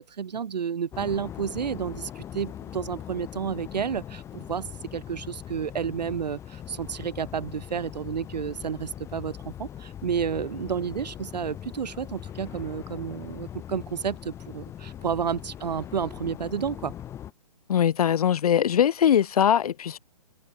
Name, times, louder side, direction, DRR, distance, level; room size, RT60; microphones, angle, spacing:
voice 1, 0.0-16.9, right 7 dB, 75° right, 1.9 m, -31 dB
sound 1, 0.9-17.3, left 10 dB, 15° left, 1.2 m, -41 dB
voice 2, 17.7-20.0, left 9 dB, 60° left, 0.8 m, -21 dB
hypercardioid pair, 150°, 21 cm